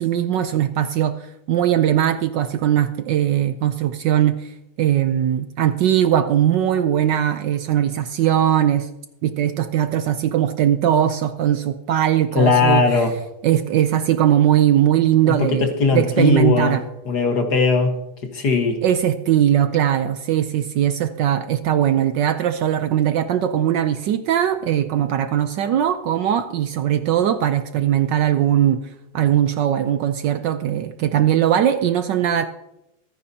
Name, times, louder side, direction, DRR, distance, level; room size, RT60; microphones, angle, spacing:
voice 1, 0.0-4.5 4.8-8.9 9.2-13.1 13.4-16.8 18.8-28.8 29.1-32.5, right 10 dB, 70° right, 10 dB, 1.1 m, -20 dB
voice 2, 12.4-13.1 15.3-16.8 17.1-17.9 18.3-18.8, left 4 dB, 55° left, 4 dB, 1.9 m, -18 dB
24.0 x 9.7 x 2.8 m, 0.89 s
omnidirectional pair, 2.3 m